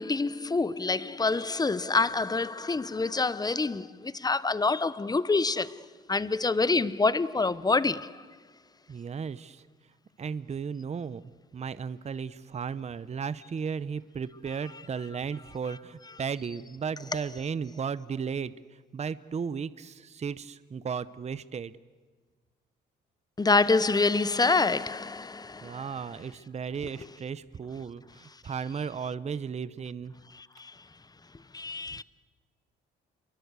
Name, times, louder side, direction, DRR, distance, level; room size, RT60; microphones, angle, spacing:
voice 1, 0.0-8.2 23.4-25.9 30.3-30.8 31.5-32.0, left 3 dB, 20° left, 0.9 m, -27 dB
voice 2, 8.9-9.7 10.2-11.2 11.5-21.7 25.6-30.1 31.9-32.0, right 6 dB, 35° right, 0.8 m, -35 dB
28.5 x 23.0 x 8.2 m
cardioid pair, 90°, 20 cm